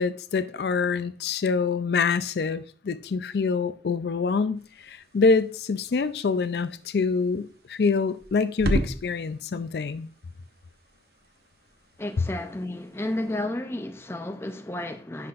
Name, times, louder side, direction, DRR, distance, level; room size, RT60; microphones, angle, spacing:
voice 1, 0.0-10.1, left 4 dB, 65° left, 0.4 m, -26 dB
sonido pasos, 4.5-13.5, right 1 dB, 60° right, 0.8 m, -37 dB
voice 2, 12.0-15.3, left 1 dB, 15° left, 0.5 m, -32 dB
10.0 x 5.8 x 2.5 m
head